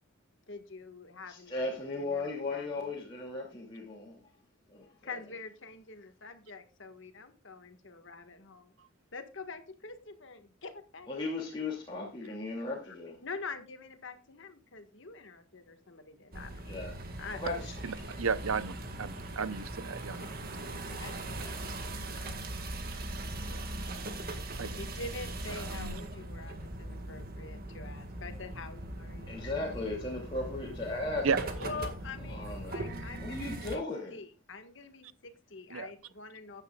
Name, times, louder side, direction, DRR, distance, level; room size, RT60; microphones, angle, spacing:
voice 1, 0.5-2.9 5.0-8.7 9.1-11.5 12.2-12.4 13.2-16.6 17.2-17.4 20.2-20.3 21.0-21.5 24.8-29.5 31.6-33.8 34.1-36.6, left 4 dB, 65° left, 1.6 m, -45 dB
voice 2, 1.3-4.2 4.7-5.2 11.1-13.2 16.6-17.0 17.3-18.1 29.3-31.5 32.2-32.7 33.2-34.2, left 2 dB, 25° left, 2.6 m, -37 dB
sound 1, 16.3-33.8, right 1 dB, 45° right, 1.9 m, -40 dB
voice 3, 17.8-18.7 19.0-20.3 21.3-21.5 23.5-23.7 24.6-24.8 25.5-26.0 31.2-31.4 35.7-35.9, right 5 dB, 85° right, 0.7 m, -34 dB
15.0 x 10.0 x 2.4 m
head